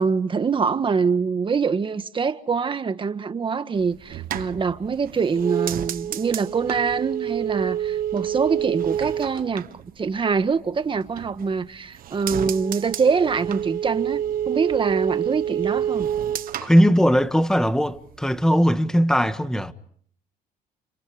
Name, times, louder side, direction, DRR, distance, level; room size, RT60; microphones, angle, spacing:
voice 1, 0.0-9.7 10.0-16.1, right 5 dB, 30° right, 1.6 m, -24 dB
sound 1, 3.8-10.6 10.9-11.6 11.9-17.6 17.9-18.4, right 10 dB, 60° right, 1.4 m, -28 dB
voice 2, 16.6-19.7, equal, 5° left, 1.6 m, -19 dB
30.0 x 29.5 x 5.0 m
cardioid pair, 110°, 17 cm